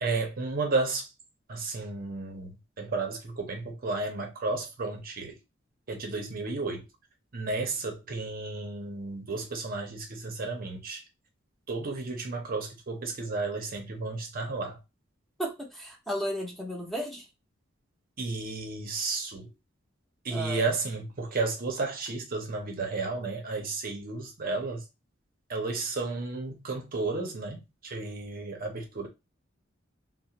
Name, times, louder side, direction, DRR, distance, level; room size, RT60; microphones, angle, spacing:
voice 1, 0.0-1.1 1.5-5.4 5.9-6.9 7.3-11.0 11.7-14.8 18.2-19.5 20.2-24.8 25.5-29.1, right 3 dB, 50° right, 0.6 m, -33 dB
voice 2, 15.4-17.3 20.3-20.7, equal, ahead, 0.6 m, -34 dB
2.4 x 2.0 x 2.8 m
head